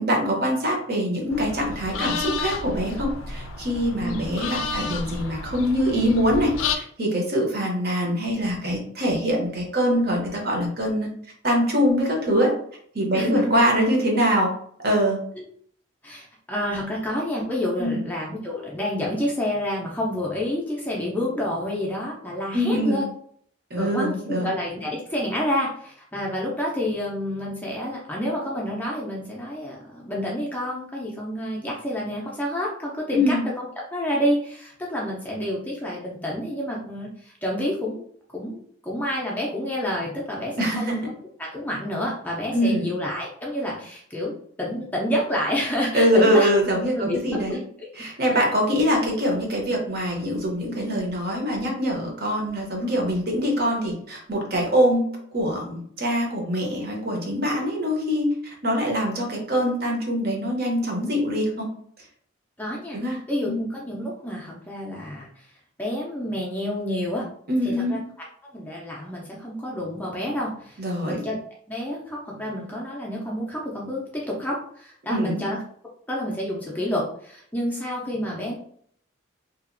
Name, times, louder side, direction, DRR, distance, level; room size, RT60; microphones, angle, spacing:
voice 1, 0.0-11.1 11.4-12.5 12.9-14.5 14.8-15.2 17.8-18.0 22.5-23.0 23.7-24.5 33.1-33.4 40.6-41.0 42.5-42.9 45.9-47.6 48.0-61.7 62.9-63.6 67.5-67.9 70.8-71.2 75.1-75.4, equal, 50° right, 0 dB, 0.8 m, -23 dB
sound 1, 1.3-6.8, left 4 dB, 85° left, 0.4 m, -31 dB
voice 2, 13.1-13.5 16.0-23.0 23.8-38.0 38.3-41.0 41.4-44.3 44.6-46.5 47.0-47.2 47.5-47.9 48.3-48.4 62.6-63.0 63.3-65.3 65.8-67.3 67.6-68.0 68.5-71.4 71.7-75.6 76.1-78.5, left 1 dB, 10° left, -3 dB, 0.4 m, -29 dB
2.8 x 2.4 x 2.5 m, 0.62 s
head